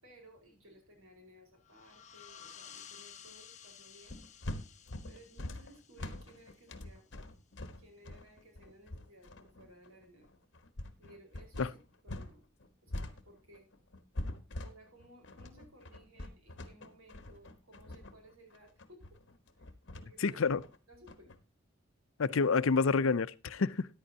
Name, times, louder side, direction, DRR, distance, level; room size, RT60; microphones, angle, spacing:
voice 1, 0.0-4.2 5.1-7.1 7.8-10.3 11.0-11.8 12.0-12.4 12.8-13.7 14.6-19.2 19.6-19.7 19.9-20.4 20.9-21.3, equal, 90° right, 4.8 m, -59 dB
sound 1, 1.6-7.0, left 9 dB, 35° left, 0.9 m, -54 dB
sound 2, 4.1-12.3 12.6-21.4, left 1 dB, 55° left, 1.1 m, -44 dB
voice 2, 20.2-20.6 22.2-23.9, left 4 dB, 75° left, 0.6 m, -28 dB
14.0 x 10.5 x 2.8 m
head